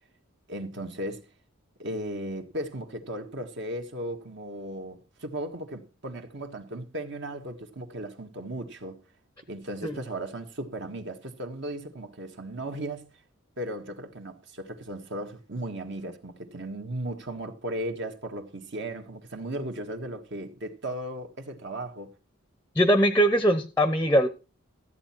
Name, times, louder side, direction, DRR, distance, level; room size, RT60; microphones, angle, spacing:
voice 1, 0.5-1.2 1.8-9.0 9.5-13.1 13.6-22.1, right 1 dB, 55° right, 1.6 m, -36 dB
voice 2, 22.8-24.3, equal, 10° left, 0.7 m, -21 dB
14.0 x 8.5 x 4.4 m
head